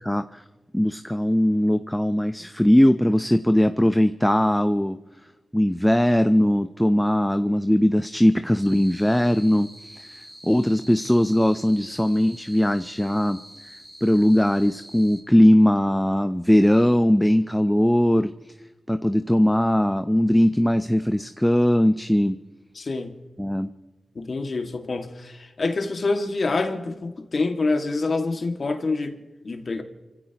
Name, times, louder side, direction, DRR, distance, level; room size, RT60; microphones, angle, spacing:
voice 1, 0.0-0.4 0.7-5.0 5.5-18.5 18.9-22.4 23.4-23.7, equal, 10° left, 9 dB, 0.7 m, -20 dB
sound 1, 8.6-15.2, equal, 40° right, 4.2 m, -46 dB
voice 2, 22.8-23.2 24.2-29.2 29.4-29.8, left 3 dB, 60° left, 5 dB, 2.1 m, -26 dB
29.5 x 16.0 x 3.0 m, 1.2 s
cardioid pair, 45°, 0 cm